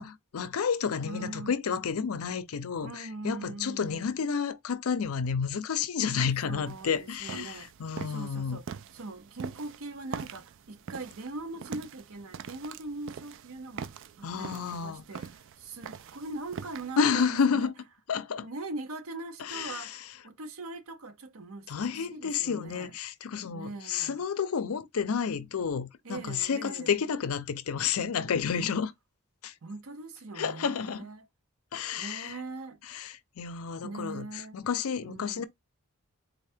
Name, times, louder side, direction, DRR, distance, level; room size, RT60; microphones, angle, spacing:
voice 1, 0.0-8.6 14.2-15.0 17.0-17.7 18.1-18.5 19.4-20.1 21.7-28.9 29.4-29.5 30.4-31.1 31.7-32.4 32.9-35.4, left 6 dB, 90° left, 0.5 m, -30 dB
voice 2, 1.0-1.5 2.8-4.1 6.5-7.7 8.1-8.7 8.9-17.7 18.4-21.7 22.1-22.9 23.5-24.2 26.0-26.9 28.6-28.8 29.6-31.3 32.0-32.8 33.8-34.6 35.0-35.4, right 2 dB, 80° right, 0.8 m, -41 dB
sound 1, 6.7-17.0, right 6 dB, 60° right, 0.4 m, -44 dB
3.9 x 2.7 x 3.4 m
head